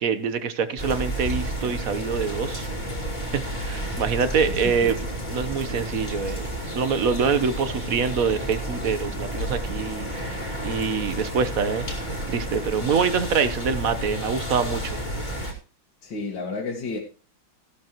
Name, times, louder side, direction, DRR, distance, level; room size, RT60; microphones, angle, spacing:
voice 1, 0.0-2.7 3.6-5.0 5.3-15.0, right 6 dB, 50° right, 1.2 m, -25 dB
sound 1, 0.8-15.5, equal, 20° left, 2.5 m, -31 dB
voice 2, 16.0-17.0, left 3 dB, 60° left, 2.4 m, -31 dB
15.0 x 11.5 x 3.0 m
omnidirectional pair, 2.3 m